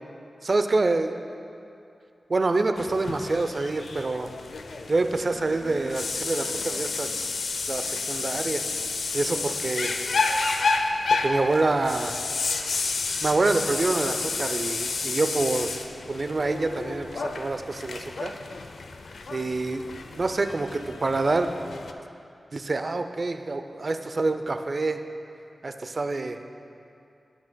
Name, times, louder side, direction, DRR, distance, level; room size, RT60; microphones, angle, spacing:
voice 1, 0.4-1.1 2.3-4.3 4.9-7.1 7.7-8.6 9.1-10.0 11.2-12.2 13.2-15.7 16.1-18.3 19.3-19.8 20.2-21.5 22.5-25.0 25.6-26.6, right 3 dB, 50° right, 8 dB, 0.4 m, -26 dB
sound 1, 2.8-21.9, left 3 dB, 85° left, 0.4 m, -30 dB
17.5 x 6.1 x 2.2 m, 2.6 s
wide cardioid pair, 70°, 0 cm